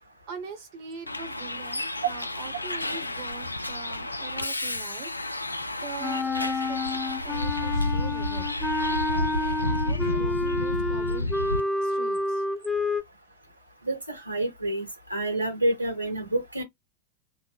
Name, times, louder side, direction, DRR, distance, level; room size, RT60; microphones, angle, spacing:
voice 1, 0.3-8.4 8.8-11.3 11.8-12.4, right 6 dB, 45° right, 1.0 m, -43 dB
Bus, 1.1-11.6, left 1 dB, 85° left, 0.3 m, -31 dB
Wind instrument woodwind instrument, 6.0-13.0, left 2 dB, 10° left, 0.5 m, -28 dB
voice 2, 13.9-16.6, right 1 dB, 85° right, 1.4 m, -28 dB
2.9 x 2.0 x 3.5 m
figure-of-eight pair, 90°, 0 cm